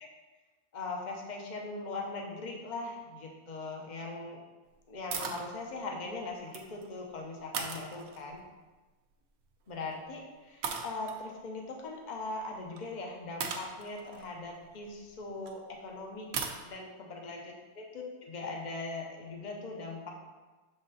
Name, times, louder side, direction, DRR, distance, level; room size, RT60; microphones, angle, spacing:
voice 1, 0.7-4.4 4.9-8.4 9.7-16.3 16.6-20.1, left 3 dB, 40° left, 0 dB, 0.8 m, -40 dB
sound 1, 5.1-5.5 6.3-6.9 7.5-8.4 9.7-9.9 10.6-11.2 12.8-12.9 13.4-15.5 16.3-16.6, right 6 dB, 75° right, 1.1 m, -38 dB
6.4 x 4.1 x 3.9 m, 1.3 s
omnidirectional pair, 1.6 m